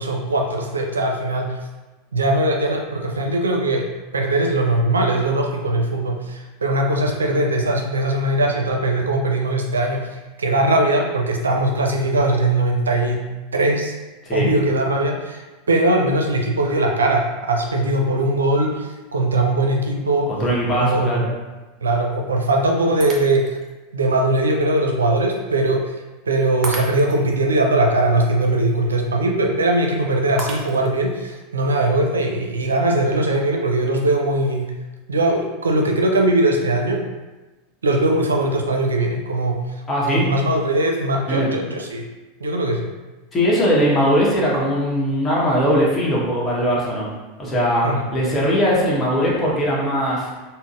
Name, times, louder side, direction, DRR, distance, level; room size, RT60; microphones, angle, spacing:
voice 1, 0.0-1.6 2.1-3.9 4.1-13.2 13.5-13.9 14.3-20.4 20.8-21.3 21.8-23.6 23.9-25.8 26.3-34.7 35.1-37.0 37.8-39.6 40.1-42.0 42.4-42.9 47.8-48.0, right 2 dB, 85° right, 1 dB, 0.4 m, -20 dB
voice 2, 20.3-21.3 39.9-40.3 41.3-41.5 43.3-47.1 47.4-50.3, equal, 25° left, -5 dB, 1.1 m, -20 dB
Shatter, 23.0-23.7 24.3-24.4 26.6-27.4 30.4-31.1, right 2 dB, 35° right, 0.6 m, -32 dB
3.8 x 2.0 x 2.4 m, 1.2 s
hypercardioid pair, 90°, 0 cm